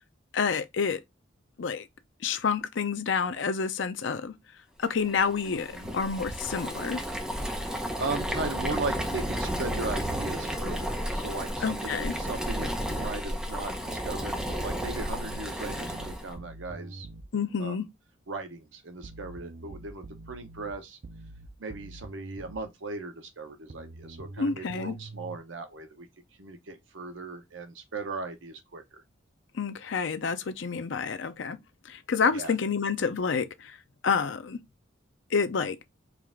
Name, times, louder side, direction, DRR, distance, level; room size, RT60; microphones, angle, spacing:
voice 1, 0.3-1.0 1.6-1.9 2.2-4.3 4.8-7.0 11.6-12.1 17.3-17.8 24.4-25.0 29.5-31.6 31.9-33.8 34.0-34.6 35.3-35.8, left 5 dB, 65° left, 0.5 m, -28 dB
Boiling, 5.1-16.3, equal, 5° right, 0.7 m, -33 dB
voice 2, 7.7-17.1 17.6-17.8 18.3-21.0 21.6-26.1 26.4-29.0 32.3-32.5, right 3 dB, 70° right, 0.8 m, -38 dB
sound 1, 14.7-17.3 19.0-22.6 23.7-25.4, right 2 dB, 50° right, 0.5 m, -45 dB
4.7 x 2.4 x 3.5 m
head